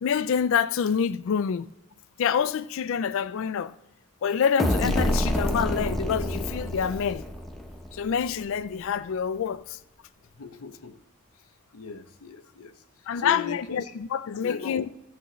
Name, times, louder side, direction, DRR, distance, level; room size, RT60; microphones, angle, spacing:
voice 1, 0.0-1.7 2.2-3.7 4.2-7.3 7.9-9.8 13.1-14.9, left 7 dB, 60° left, 0.3 m, -27 dB
sound 1, 4.6-8.2, equal, ahead, 0.8 m, -27 dB
voice 2, 10.3-11.0 11.7-14.0 14.4-14.9, left 6 dB, 85° left, 0.7 m, -38 dB
15.0 x 8.4 x 3.1 m
head